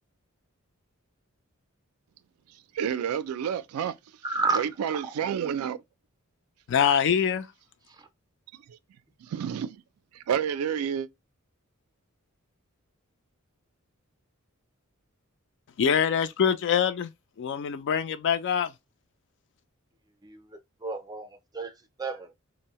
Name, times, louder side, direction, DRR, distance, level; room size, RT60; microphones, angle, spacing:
voice 1, 2.7-3.9 4.5-5.8 9.2-9.8 10.1-11.1, right 8 dB, 85° right, 0.3 m, -29 dB
voice 2, 4.2-4.7 4.9-5.0 20.2-21.3 21.5-21.7 22.0-22.3, right 3 dB, 20° right, 0.4 m, -30 dB
voice 3, 6.7-7.4 15.8-17.1 17.4-18.7, left 7 dB, 55° left, 0.3 m, -24 dB
2.6 x 2.0 x 2.9 m
head